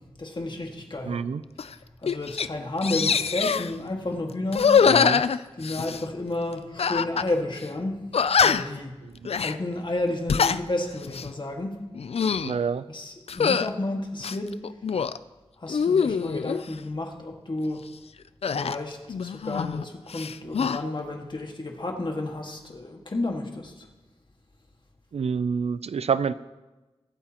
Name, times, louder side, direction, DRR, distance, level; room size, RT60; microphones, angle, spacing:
voice 1, 0.2-1.2 2.0-4.9 5.5-8.1 8.4-8.9 9.4-11.9 12.9-14.6 15.6-17.8 18.5-23.9, left 2 dB, 50° left, 2 dB, 1.8 m, -31 dB
voice 2, 1.0-1.4 4.9-5.2 12.4-12.8 25.1-26.3, right 6 dB, 85° right, 15 dB, 0.4 m, -27 dB
sound 1, 1.6-1.7 2.1-2.5 2.8-3.7 4.5-6.0 6.8-7.3 7.6-7.7 8.1-8.8 9.2-9.5 10.1-10.6 11.0-11.3 11.9-12.5 13.3-13.7 14.2-15.2 15.7-16.6 18.4-19.8 20.1-20.8, left 6 dB, 75° left, 0.4 m, -24 dB
23.0 x 8.7 x 2.9 m, 1.1 s
wide cardioid pair, 65°, 11 cm